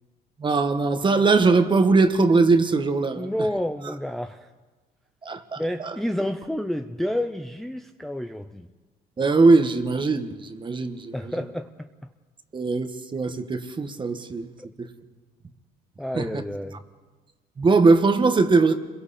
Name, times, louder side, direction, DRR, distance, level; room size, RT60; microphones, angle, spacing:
voice 1, 0.4-3.3 5.2-5.9 9.2-11.1 12.5-14.5 14.8-14.9 16.1-16.3 17.6-18.7, right 3 dB, 30° right, 1.5 m, -20 dB
voice 2, 3.2-4.5 5.6-8.7 11.1-11.9 16.0-16.8, left 1 dB, ahead, 0.7 m, -29 dB
29.0 x 22.5 x 4.3 m
cardioid pair, 110°, 17 cm